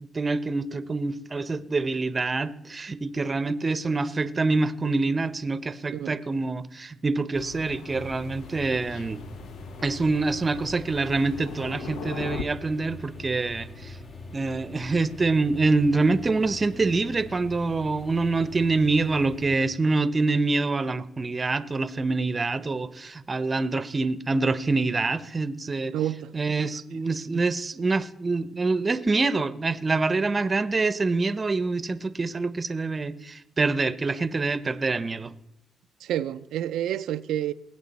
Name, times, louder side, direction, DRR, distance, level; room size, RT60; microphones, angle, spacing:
voice 1, 0.1-9.2 9.8-14.0 14.3-25.9 26.3-35.3, right 3 dB, 30° right, 0.7 m, -26 dB
Thunder, 7.3-12.4, left 6 dB, 80° left, 0.7 m, -40 dB
sound 1, 7.9-19.5, left 2 dB, 50° left, 2.3 m, -43 dB
voice 2, 25.9-26.3 36.0-37.5, right 11 dB, 80° right, 0.4 m, -29 dB
20.0 x 8.4 x 4.1 m
cardioid pair, 90°, 0 cm